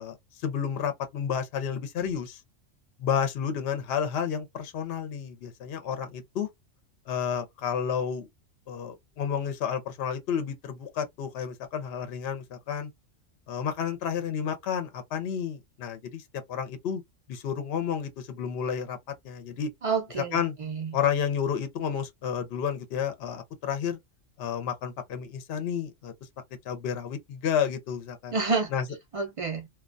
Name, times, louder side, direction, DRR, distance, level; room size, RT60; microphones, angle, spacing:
voice 1, 0.0-2.4 3.0-6.5 7.1-8.3 8.7-12.9 13.5-16.2 16.5-17.0 17.3-19.0 19.2-19.7 20.3-20.6 20.9-24.0 24.4-26.1 26.6-28.3 28.7-28.8, left 7 dB, 60° left, 0.7 m, -31 dB
voice 2, 19.8-21.0 28.3-28.7 29.1-29.7, right 4 dB, 65° right, 0.3 m, -29 dB
2.3 x 2.1 x 2.5 m
omnidirectional pair, 1.3 m